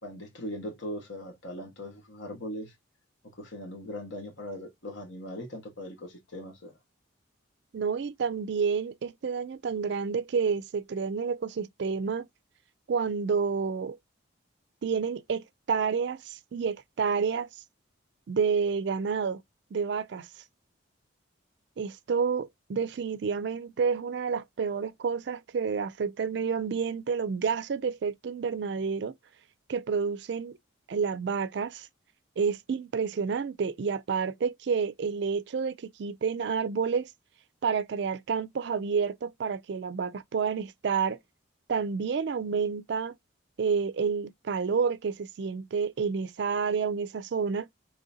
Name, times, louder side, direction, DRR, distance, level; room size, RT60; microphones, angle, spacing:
voice 1, 0.0-2.7 3.4-6.7, equal, 65° left, 1.4 m, -39 dB
voice 2, 7.7-12.3 12.9-14.0 14.8-17.5 18.3-19.4 19.7-20.3 21.8-29.1 29.7-30.5 30.9-31.9 32.4-37.1 37.6-41.2 41.7-43.2 43.6-47.7, right 5 dB, 55° right, 0.3 m, -29 dB
3.8 x 3.1 x 2.7 m
head